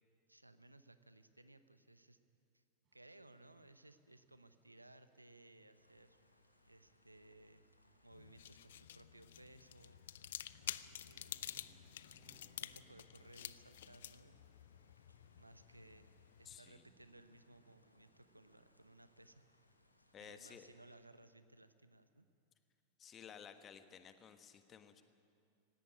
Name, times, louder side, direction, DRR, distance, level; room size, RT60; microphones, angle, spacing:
voice 1, 0.3-2.2 2.5-2.6 2.9-6.2 6.7-7.6 8.0-10.0 10.7-11.6 12.6-14.5 15.4-19.4 20.2-22.3, right 2 dB, 85° right, 12 dB, 0.9 m, -61 dB
sound 1, 2.8-21.3, right 3 dB, 35° right, 4.0 m, -76 dB
sound 2, 5.7-20.8, left 1 dB, 85° left, 1.2 m, -73 dB
sound 3, 8.1-16.6, left 11 dB, 60° left, 0.5 m, -50 dB
voice 2, 16.4-16.8 20.1-20.7 23.0-25.0, left 8 dB, 25° left, 9 dB, 1.4 m, -55 dB
17.0 x 17.0 x 9.7 m, 2.4 s
figure-of-eight pair, 90°, 0 cm